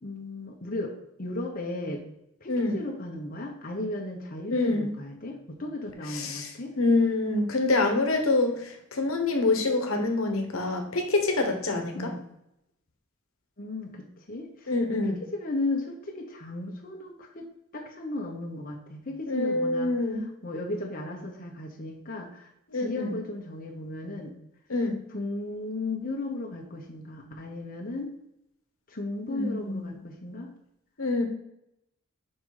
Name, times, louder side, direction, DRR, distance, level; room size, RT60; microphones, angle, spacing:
voice 1, 0.0-2.0 2.4-6.7 11.9-12.2 13.6-17.5 17.7-19.9 20.4-24.3 25.1-28.1 28.9-30.5, left 2 dB, 40° left, 0 dB, 1.0 m, -35 dB
voice 2, 4.5-4.9 6.1-12.1 14.7-15.2 19.3-20.3 22.7-23.1 24.7-25.0 29.3-30.0 31.0-31.2, left 2 dB, 75° left, 4 dB, 1.2 m, -26 dB
5.9 x 5.4 x 4.8 m, 0.82 s
head